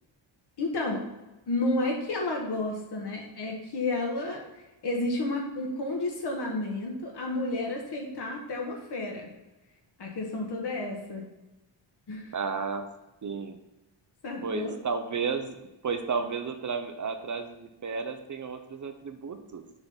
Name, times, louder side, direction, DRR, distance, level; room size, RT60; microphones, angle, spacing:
voice 1, 0.6-1.0 1.5-9.3 10.0-11.2 12.1-12.3 14.2-14.7, left 2 dB, 55° left, 0 dB, 1.6 m, -31 dB
voice 2, 12.3-12.9 13.2-13.6 14.4-19.6, right 5 dB, 40° right, 8 dB, 0.7 m, -33 dB
7.0 x 3.8 x 5.6 m, 1.0 s
wide cardioid pair, 130°, 49 cm